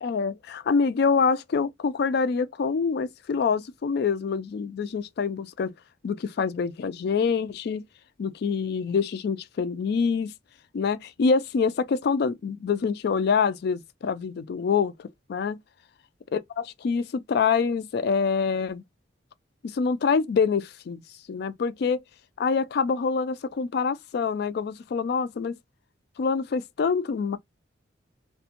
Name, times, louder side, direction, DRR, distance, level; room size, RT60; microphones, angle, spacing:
voice 1, 0.0-5.7 6.0-7.8 8.2-10.3 10.7-15.6 16.3-18.8 19.7-21.0 21.3-22.0 22.4-25.5 26.2-27.4, left 5 dB, 55° left, 0.3 m, -26 dB
2.5 x 2.2 x 2.8 m
head